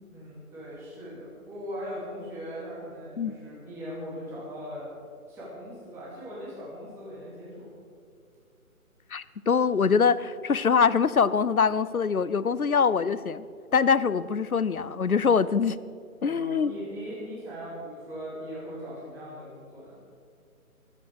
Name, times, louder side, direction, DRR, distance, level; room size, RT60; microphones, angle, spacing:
voice 1, 0.1-4.9 5.3-7.7 16.2-20.0, equal, 5° right, -8 dB, 2.6 m, -39 dB
voice 2, 9.1-13.4 13.7-15.8 16.2-16.7, left 6 dB, 75° left, 17 dB, 0.8 m, -23 dB
22.0 x 9.7 x 4.9 m, 2.4 s
figure-of-eight pair, 150°, 44 cm